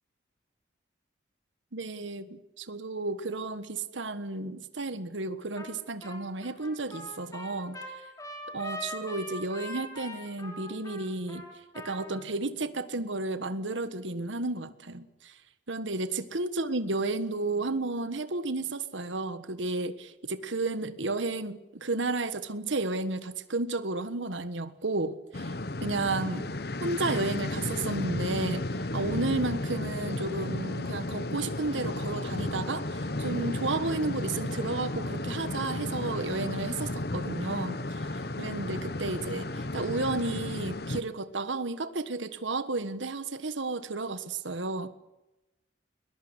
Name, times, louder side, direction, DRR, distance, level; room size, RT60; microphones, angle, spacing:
voice 1, 1.7-7.8 8.5-11.4 11.7-15.4 15.7-25.5 25.8-26.5 26.8-28.7 28.9-44.9, right 3 dB, 85° right, 1.5 m, -32 dB
Trumpet, 5.6-5.8 6.0-12.2, left 1 dB, 15° left, 5.4 m, -42 dB
sound 1, 25.3-41.0, left 2 dB, 55° left, 1.1 m, -33 dB
22.0 x 21.0 x 8.2 m
head